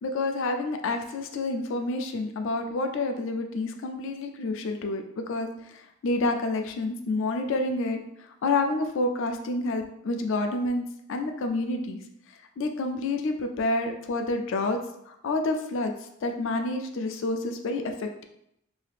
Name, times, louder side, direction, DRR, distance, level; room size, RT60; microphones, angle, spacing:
voice 1, 0.0-5.5 6.0-8.0 8.4-12.0 12.6-14.8 15.1-15.9 16.2-18.2, left 2 dB, 55° left, 5 dB, 0.3 m, -28 dB
2.7 x 2.4 x 3.3 m, 0.77 s
head